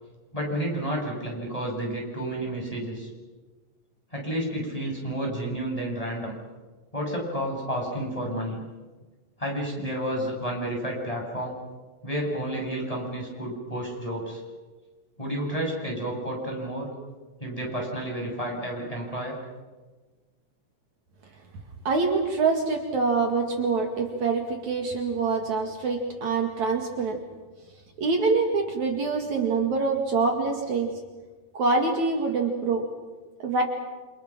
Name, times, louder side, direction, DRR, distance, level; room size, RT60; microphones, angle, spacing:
voice 1, 0.3-3.1 4.1-6.3 6.9-8.6 9.4-11.6 12.0-14.4 15.2-16.9 17.4-19.4, right 1 dB, 10° left, -1 dB, 7.0 m, -31 dB
voice 2, 21.8-27.2 28.0-30.9 31.5-32.9 33.4-33.6, right 4 dB, 60° right, 3 dB, 3.3 m, -25 dB
28.5 x 27.5 x 6.1 m, 1.3 s
omnidirectional pair, 3.8 m